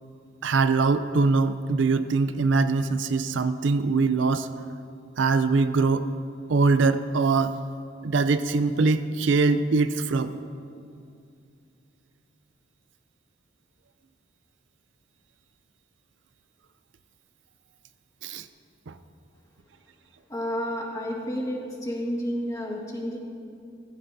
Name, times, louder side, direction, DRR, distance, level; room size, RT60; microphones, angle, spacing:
voice 1, 0.4-4.5 5.2-6.1 6.5-7.6 8.0-10.4 18.2-18.5 18.9-19.0, right 4 dB, 75° right, 11 dB, 0.5 m, -22 dB
voice 2, 20.3-23.2, equal, 20° left, -2 dB, 1.7 m, -30 dB
16.0 x 15.5 x 2.7 m, 2.4 s
head